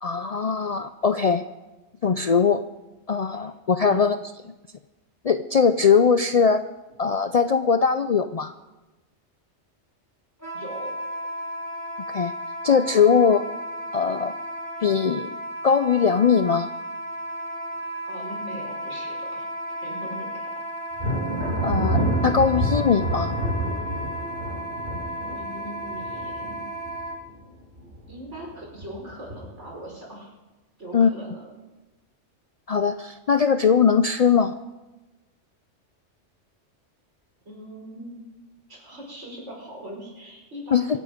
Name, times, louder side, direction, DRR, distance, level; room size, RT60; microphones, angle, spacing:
voice 1, 0.0-1.5 2.0-2.6 3.1-4.2 4.4-4.5 5.2-6.6 7.0-8.5 12.1-12.4 12.6-13.5 13.9-14.3 14.8-15.4 15.6-16.7 21.6-23.4 30.9-31.1 32.7-34.6 40.7-41.0, left 6 dB, 50° left, 10 dB, 0.4 m, -20 dB
Wind instrument woodwind instrument, 10.4-27.2, equal, 15° right, 2.6 m, -34 dB
voice 2, 10.5-10.9 18.1-19.5 19.8-20.6 25.2-26.7 28.1-30.3 30.8-31.5 37.5-38.3 38.7-41.0, right 1 dB, 70° right, -2 dB, 5.5 m, -40 dB
Thunder, 21.0-27.4 27.8-28.4 28.8-29.6, right 1 dB, 55° right, 4.1 m, -28 dB
25.0 x 9.0 x 5.1 m, 1.1 s
omnidirectional pair, 1.2 m